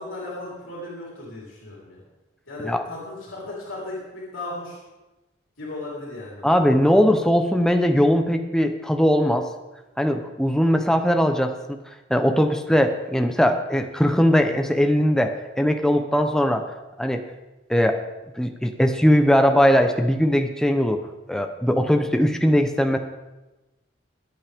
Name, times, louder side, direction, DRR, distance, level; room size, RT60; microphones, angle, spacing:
voice 1, 0.0-2.0 2.5-4.8 5.6-6.5, left 2 dB, 85° left, -5 dB, 4.2 m, -36 dB
voice 2, 6.4-9.5 10.0-11.8 12.1-16.6 17.0-17.2 17.7-18.0 18.4-21.0 21.3-23.0, equal, 5° left, 5 dB, 0.8 m, -20 dB
22.5 x 8.7 x 3.6 m, 1.1 s
head